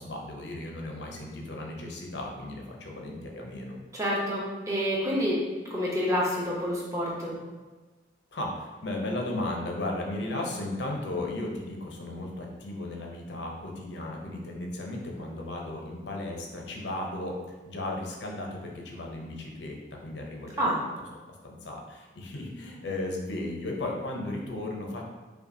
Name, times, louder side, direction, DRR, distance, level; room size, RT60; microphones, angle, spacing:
voice 1, 0.0-3.7 8.3-20.7 21.3-25.1, left 1 dB, 80° left, 0 dB, 0.7 m, -35 dB
voice 2, 3.9-5.4 5.7-7.3 20.6-20.7, equal, 15° right, -5 dB, 0.8 m, -28 dB
5.2 x 2.4 x 2.7 m, 1.3 s
head